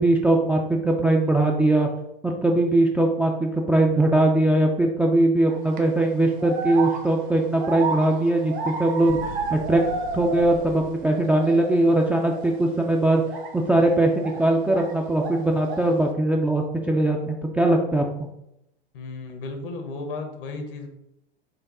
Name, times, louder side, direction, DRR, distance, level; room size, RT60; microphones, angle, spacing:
voice 1, 0.0-1.9 2.2-9.2 9.5-9.8 10.1-13.2 13.5-18.3, right 1 dB, 5° right, 1 dB, 0.3 m, -21 dB
sound 1, 5.5-5.8 6.4-10.8 11.0-11.8 12.2-12.5 13.2-14.9 15.2-16.0, right 4 dB, 60° right, 0.9 m, -32 dB
sound 2, 9.0-11.2, left 2 dB, 90° left, 0.8 m, -40 dB
voice 2, 18.9-20.9, left 3 dB, 65° left, 5 dB, 1.0 m, -34 dB
4.6 x 2.6 x 3.7 m, 0.83 s
hypercardioid pair, 95°, 29 cm